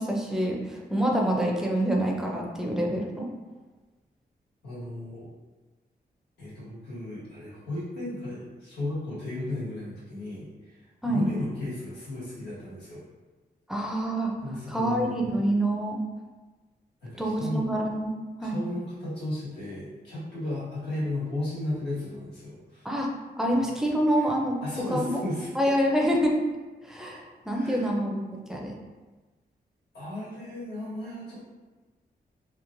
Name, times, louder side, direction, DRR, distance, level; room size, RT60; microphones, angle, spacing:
voice 1, 0.0-3.3 11.0-11.3 13.7-14.3 14.7-16.0 17.2-18.1 18.4-18.6 22.8-23.1 23.4-24.5 24.9-25.2 25.6-26.4 26.8-28.7, right 1 dB, 5° right, -1 dB, 0.4 m, -26 dB
voice 2, 4.6-5.3 6.4-13.0 14.4-15.3 17.0-17.6 18.4-22.9 24.1-24.3 24.6-25.5 27.5-27.9 29.9-31.4, left 1 dB, 90° left, -9 dB, 1.5 m, -35 dB
3.0 x 2.4 x 2.5 m, 1.2 s
wide cardioid pair, 140°, 17 cm